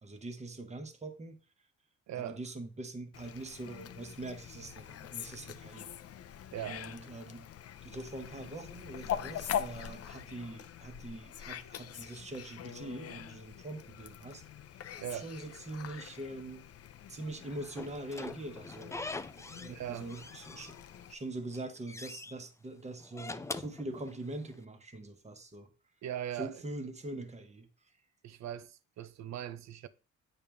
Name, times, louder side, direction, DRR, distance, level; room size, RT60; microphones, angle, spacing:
voice 1, 0.0-1.4 2.2-5.9 6.7-7.5 7.8-14.4 15.1-16.7 17.1-19.0 19.3-20.7 21.1-25.7 26.4-27.7, right 2 dB, 20° right, 1.2 m, -43 dB
voice 2, 2.1-2.4 6.5-6.8 15.0-15.3 19.7-20.1 26.0-26.6 28.2-29.9, right 11 dB, 65° right, 0.7 m, -40 dB
Fowl, 3.1-21.1, left 10 dB, 55° left, 0.6 m, -43 dB
Slam / Squeak, 17.8-19.8 20.1-21.1 21.4-22.3 23.0-24.5, left 3 dB, 10° left, 0.4 m, -43 dB
8.7 x 4.9 x 3.5 m
cardioid pair, 90°, 30 cm